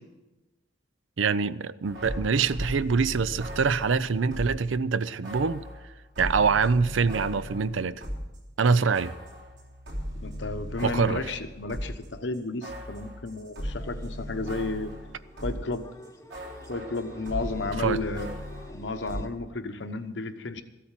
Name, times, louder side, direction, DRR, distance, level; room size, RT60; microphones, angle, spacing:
voice 1, 1.2-5.6 6.2-8.0 8.6-9.1 10.8-11.2 17.8-18.0, right 5 dB, 85° right, 0.5 m, -24 dB
sound 1, 1.8-4.7 5.2-8.4 8.6-15.8 16.0-19.2, equal, 65° right, 3.3 m, -38 dB
voice 2, 10.2-14.9 15.4-15.8 16.7-18.3 18.7-20.6, left 3 dB, 70° left, 1.0 m, -33 dB
sound 2, 13.8-19.3, left 1 dB, 15° left, 0.8 m, -49 dB
14.5 x 8.4 x 7.4 m
head